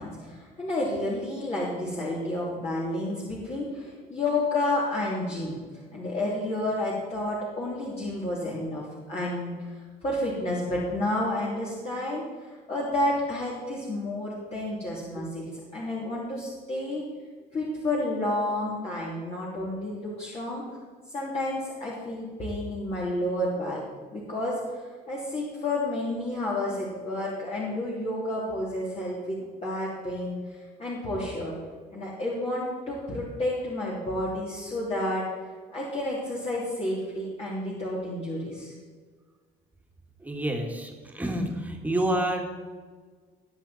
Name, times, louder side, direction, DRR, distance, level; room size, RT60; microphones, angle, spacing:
voice 1, 0.0-5.6 5.9-9.5 10.0-12.2 12.7-17.0 17.5-20.6 21.1-23.8 24.1-24.5 25.1-30.4 30.8-31.5 31.9-35.2 35.7-38.7, left 1 dB, 40° left, -6 dB, 3.3 m, -30 dB
voice 2, 40.2-42.5, right 1 dB, 10° right, 1 dB, 2.2 m, -28 dB
19.5 x 7.5 x 4.4 m, 1.5 s
cardioid pair, 110°, 17 cm